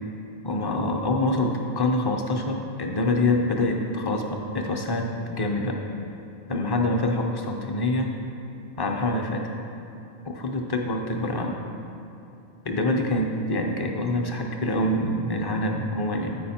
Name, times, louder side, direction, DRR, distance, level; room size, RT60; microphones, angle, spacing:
voice 1, 0.4-5.8 6.5-8.1 8.8-9.6 10.2-11.5 12.6-16.4, left 2 dB, 35° left, 1 dB, 0.4 m, -26 dB
8.4 x 5.1 x 4.2 m, 2.8 s
omnidirectional pair, 1.1 m